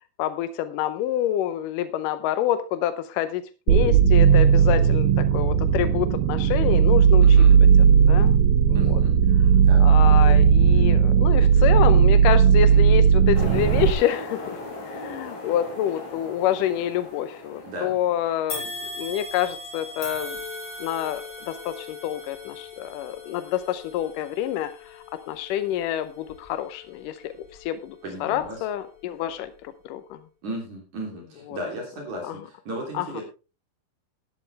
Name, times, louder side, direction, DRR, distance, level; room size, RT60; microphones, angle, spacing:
voice 1, 0.2-7.2 8.1-8.4 8.6-9.0 9.8-14.6 14.9-18.7 19.0-20.4 20.8-27.3 27.6-30.2 31.5-31.6 32.2-32.4 32.9-33.2, left 12 dB, 80° left, 12 dB, 1.9 m, -27 dB
sound 1, 3.7-13.9, right 7 dB, 70° right, 2.8 m, -16 dB
voice 2, 7.2-7.5 8.7-9.2 9.6-9.8 17.6-17.9 28.0-28.6 30.4-33.2, right 1 dB, 50° right, 1 dB, 4.3 m, -35 dB
sound 2, 13.3-18.9, left 2 dB, 45° left, 4.2 m, -38 dB
sound 3, 18.5-27.8 28.3-28.5 29.4-29.5, left 2 dB, 30° left, 3.5 m, -39 dB
13.5 x 11.5 x 3.3 m, 0.31 s
omnidirectional pair, 4.7 m